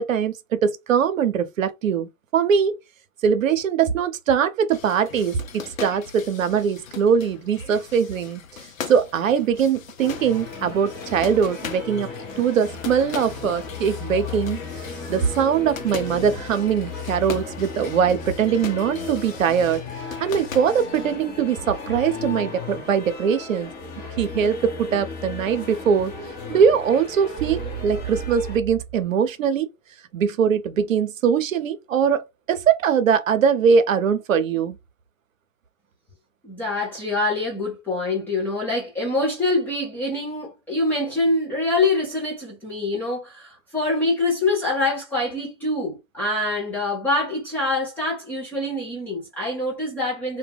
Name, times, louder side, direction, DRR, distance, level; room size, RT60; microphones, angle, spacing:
voice 1, 0.0-2.8 3.2-8.4 8.9-12.1 12.4-14.6 15.1-19.8 20.2-23.7 24.2-26.1 26.5-29.7 30.1-34.8, right 7 dB, 75° right, 0.6 m, -21 dB
sound 1, 4.7-21.2, left 7 dB, 75° left, 0.6 m, -39 dB
sound 2, 10.0-28.6, left 4 dB, 30° left, 0.8 m, -35 dB
sound 3, 27.4-29.1, right 9 dB, 25° right, 0.8 m, -33 dB
voice 2, 36.4-50.4, left 2 dB, 5° left, 0.4 m, -25 dB
2.1 x 2.1 x 3.4 m
hypercardioid pair, 120°, 40 cm